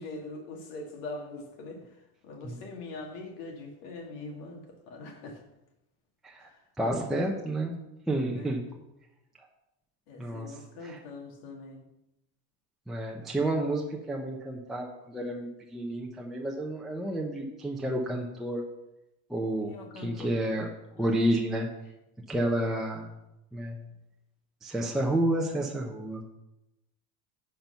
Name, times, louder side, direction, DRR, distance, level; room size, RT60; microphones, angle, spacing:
voice 1, 0.0-1.8 2.2-5.4 6.4-6.5 8.4-8.5 10.1-11.8 19.6-20.4 21.0-21.1, left 2 dB, 65° left, 2 dB, 2.1 m, -42 dB
voice 2, 6.8-8.6 10.2-10.5 10.8-11.0 12.9-18.6 19.3-20.7 21.0-21.7 22.3-23.1 23.5-23.8 24.6-26.2, right 1 dB, ahead, -1 dB, 0.7 m, -30 dB
11.0 x 4.6 x 5.7 m, 0.91 s
supercardioid pair, 135°, 42 cm